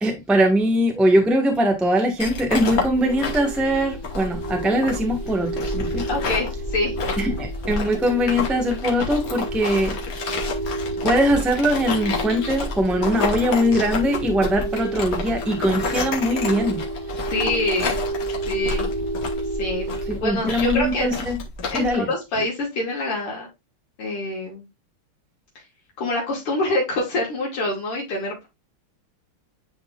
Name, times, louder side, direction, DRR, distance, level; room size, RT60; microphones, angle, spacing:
voice 1, 0.0-6.1 7.2-9.9 11.0-16.8 20.1-21.4 21.7-22.1, equal, ahead, 0.9 m, -21 dB
sound 1, 2.2-21.9, left 4 dB, 45° left, 1.6 m, -30 dB
sound 2, 2.9-20.2, right 2 dB, 75° right, 3.1 m, -31 dB
voice 2, 6.1-7.0 17.3-18.0 18.5-18.9 19.6-21.1 21.7-23.5 24.0-24.7 26.0-28.5, left 2 dB, 80° left, 2.9 m, -26 dB
10.0 x 4.0 x 2.4 m
omnidirectional pair, 2.4 m